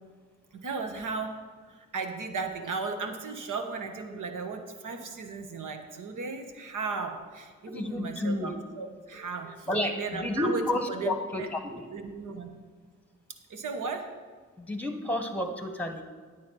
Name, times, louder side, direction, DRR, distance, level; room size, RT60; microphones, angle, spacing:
voice 1, 0.5-1.4 1.7-11.5 11.9-12.5 13.5-14.1, right 4 dB, 65° right, 6 dB, 1.2 m, -36 dB
voice 2, 7.7-8.6 9.7-11.8 14.6-16.0, left 1 dB, 5° left, 6 dB, 1.5 m, -31 dB
9.6 x 8.4 x 4.2 m, 1.5 s
supercardioid pair, 45°, 33 cm